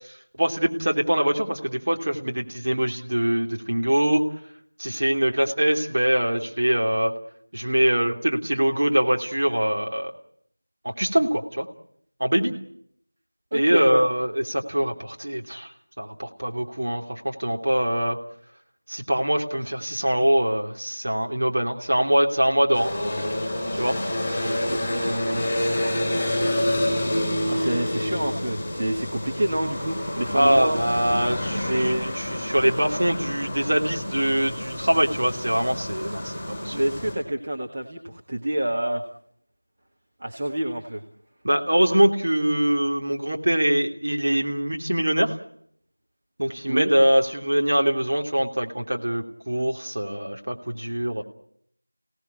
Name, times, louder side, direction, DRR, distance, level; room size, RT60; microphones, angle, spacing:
voice 1, 0.4-4.2 4.8-7.1 7.5-10.1 10.8-11.6 12.2-12.5 13.5-15.7 16.0-18.2 18.9-22.9 23.7-24.0 30.3-36.8 41.4-45.3 46.4-51.2, right 1 dB, 45° right, 2 dB, 3.1 m, -23 dB
voice 2, 13.5-14.1 24.3-26.5 27.5-30.8 31.7-32.1 36.7-39.0 40.2-41.0 46.7-46.9, right 1 dB, 20° right, -1 dB, 1.4 m, -28 dB
sound 1, 22.7-37.1, left 1 dB, ahead, 4.5 m, -28 dB
30.0 x 18.0 x 8.5 m, 0.69 s
figure-of-eight pair, 175°, 0 cm